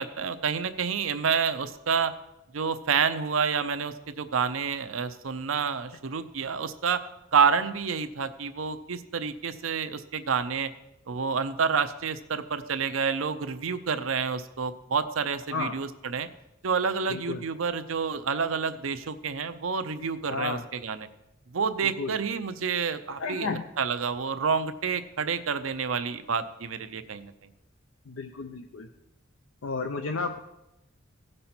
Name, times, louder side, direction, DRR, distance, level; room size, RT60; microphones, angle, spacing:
voice 1, 0.0-2.1 2.5-7.0 7.3-10.7 11.1-16.3 16.6-21.1 21.5-23.5 23.8-27.3, right 6 dB, 85° right, 10 dB, 0.6 m, -28 dB
voice 2, 17.1-17.4 20.3-20.6 21.8-22.2 23.1-23.7 28.1-28.9 29.6-30.4, left 4 dB, 70° left, 5 dB, 0.6 m, -32 dB
15.5 x 5.4 x 4.4 m, 0.92 s
head